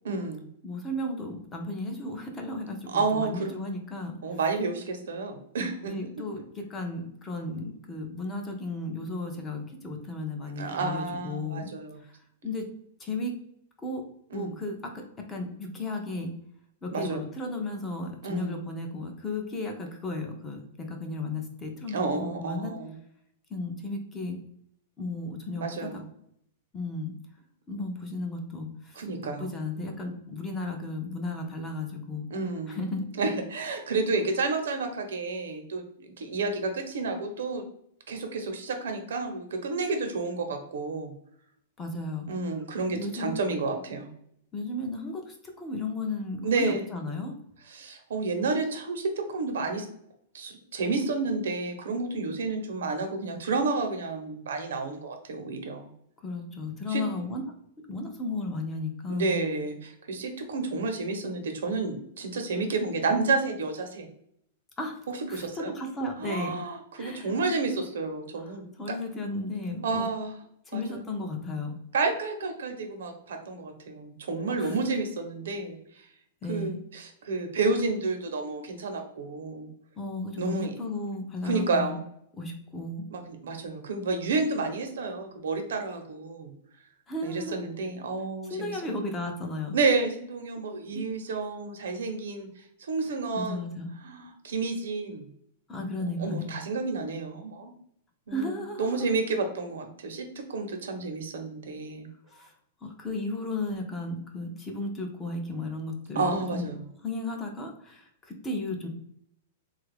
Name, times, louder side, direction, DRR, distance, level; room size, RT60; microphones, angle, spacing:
voice 1, 0.0-0.4 2.9-3.6 4.2-5.9 10.6-12.0 14.3-14.6 16.9-17.2 18.2-18.6 21.9-23.0 25.6-26.0 29.0-29.5 32.3-32.8 33.1-37.6 38.1-41.1 42.3-44.1 46.4-46.8 47.7-49.9 50.3-55.9 56.9-57.0 59.1-64.1 65.1-65.7 66.2-69.0 69.8-70.3 70.7-71.0 71.9-76.0 76.5-79.7 80.4-80.7 81.4-82.0 83.1-86.5 87.2-88.8 89.7-93.6 94.0-95.3 96.2-97.7 98.3-102.1 106.1-106.8, right 3 dB, 90° right, 5 dB, 0.7 m, -30 dB
voice 2, 0.6-4.2 5.9-11.7 12.0-12.1 12.4-12.7 13.0-13.4 13.8-14.0 14.3-15.0 15.3-16.3 16.8-22.7 23.5-24.4 25.0-25.9 26.7-27.1 27.7-29.0 29.4-32.2 32.7-33.1 41.8-42.3 42.9-43.3 44.5-47.3 56.2-57.4 57.9-59.4 64.8-65.0 65.3-66.6 67.0-67.4 68.4-70.1 70.7-71.8 74.6-74.8 76.4-76.8 80.0-82.0 82.4-83.1 87.1-87.6 88.5-89.8 90.9-91.0 93.3-93.9 95.7-96.5 98.3-99.1 102.3-102.5 102.8-106.7 107.0-108.9, left 2 dB, 10° left, 3 dB, 0.4 m, -34 dB
3.3 x 2.3 x 3.3 m, 0.71 s
supercardioid pair, 175°, 0 cm